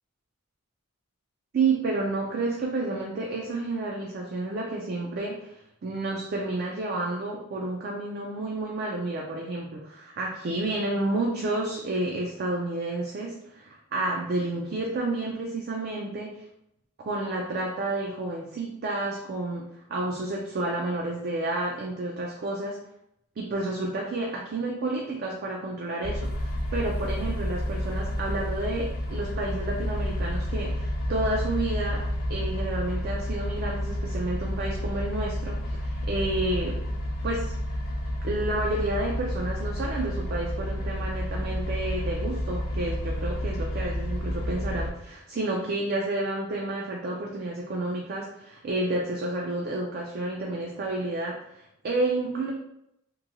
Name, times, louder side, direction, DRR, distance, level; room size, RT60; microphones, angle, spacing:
voice 1, 1.5-5.6 5.8-16.4 17.1-22.8 23.4-36.8 37.2-37.5 38.2-52.5, right 2 dB, 45° right, -1 dB, 0.4 m, -30 dB
sound 1, 26.0-44.9, equal, 40° left, 0.5 m, -30 dB
3.0 x 2.7 x 2.6 m, 0.78 s
head